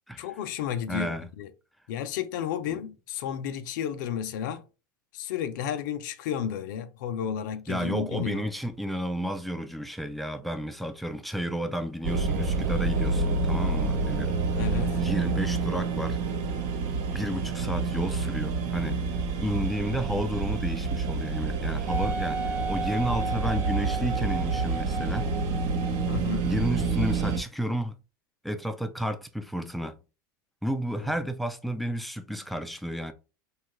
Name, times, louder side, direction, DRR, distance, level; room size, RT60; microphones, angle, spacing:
voice 1, 0.2-1.5 1.9-4.7 5.1-8.5 14.6-15.0 26.1-26.5 31.0-31.1, left 9 dB, 65° left, 0.5 m, -32 dB
voice 2, 0.9-1.3 7.7-14.3 15.0-16.2 17.1-19.0 19.4-25.3 26.4-28.0 28.4-30.0 30.6-33.1, equal, ahead, 0.3 m, -32 dB
sound 1, 12.0-27.4, right 4 dB, 55° right, 0.6 m, -28 dB
Wind instrument woodwind instrument, 21.9-26.2 26.8-26.9, right 3 dB, 20° right, 0.7 m, -34 dB
3.0 x 2.3 x 2.9 m
supercardioid pair, 120°, 11 cm